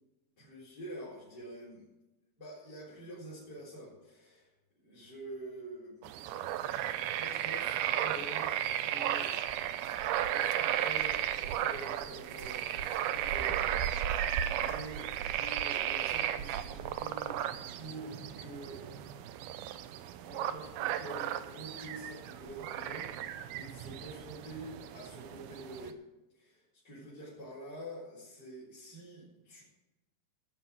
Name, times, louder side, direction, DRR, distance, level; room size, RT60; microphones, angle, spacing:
voice 1, 0.4-1.9 2.4-4.5 4.8-6.1 7.2-9.3 10.2-12.7 13.0-13.6 14.0-18.9 20.2-26.0 26.3-29.6, right 1 dB, 25° left, -9 dB, 4.5 m, -47 dB
sound 1, 6.0-25.9, right 11 dB, 80° right, 2.5 m, -34 dB
17.0 x 6.1 x 7.8 m, 1.0 s
omnidirectional pair, 4.6 m